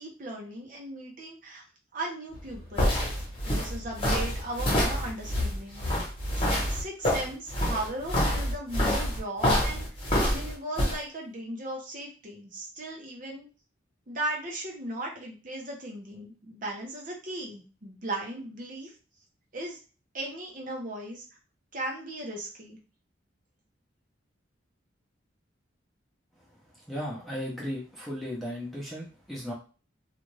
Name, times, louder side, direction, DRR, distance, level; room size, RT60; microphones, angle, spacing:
voice 1, 0.0-1.6 1.9-2.9 3.5-5.8 6.3-9.9 10.3-13.5 14.1-18.9 19.5-19.8 20.1-21.2 21.7-22.8, right 1 dB, 40° right, -1 dB, 0.7 m, -37 dB
sound 1, 2.3-11.0, equal, 30° left, 1.0 m, -27 dB
voice 2, 26.9-29.5, equal, ahead, -5 dB, 0.7 m, -35 dB
2.5 x 2.4 x 3.1 m, 0.35 s
head